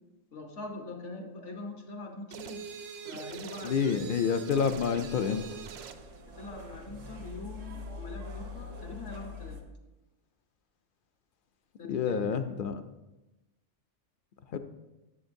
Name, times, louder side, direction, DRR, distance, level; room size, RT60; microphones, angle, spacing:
voice 1, 0.3-2.7 3.0-4.1 6.3-9.6 11.8-12.3, left 2 dB, 75° left, 2 dB, 1.5 m, -43 dB
sound 1, 2.3-6.1, right 7 dB, 65° right, 0.7 m, -43 dB
voice 2, 3.6-5.4 11.9-12.8 14.5-14.6, left 7 dB, 60° left, 9 dB, 0.6 m, -28 dB
sound 2, 4.5-9.6, left 2 dB, 90° right, 1.4 m, -44 dB
12.5 x 7.1 x 2.6 m, 1.0 s
omnidirectional pair, 1.2 m